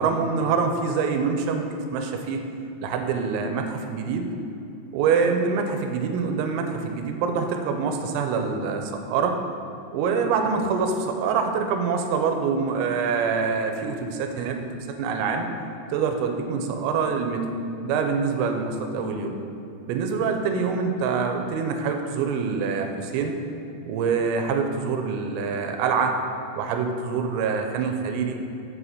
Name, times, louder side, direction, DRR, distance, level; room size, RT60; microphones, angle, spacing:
voice 1, 0.0-2.5 2.8-4.3 4.9-9.4 9.9-15.5 15.9-17.5 17.8-19.4 19.9-23.3 23.9-26.2 26.5-28.4, right 5 dB, 85° right, 5 dB, 3.4 m, -25 dB
8.1 x 5.0 x 6.6 m, 2.7 s
omnidirectional pair, 6.0 m